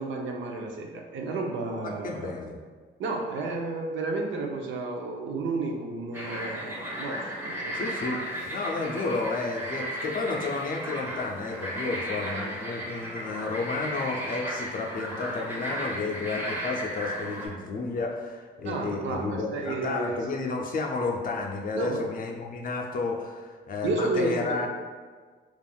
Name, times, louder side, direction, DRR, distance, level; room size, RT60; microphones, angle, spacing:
voice 1, 0.0-2.3 3.0-7.7 18.6-20.2 21.7-22.0 23.8-24.7, right 3 dB, 70° right, 1 dB, 0.5 m, -31 dB
voice 2, 1.8-2.6 7.7-24.7, left 3 dB, 45° left, 1 dB, 0.5 m, -31 dB
sound 1, 6.1-17.5, equal, 10° right, 0.7 m, -35 dB
3.4 x 2.4 x 2.2 m, 1.5 s
cardioid pair, 90°, 20 cm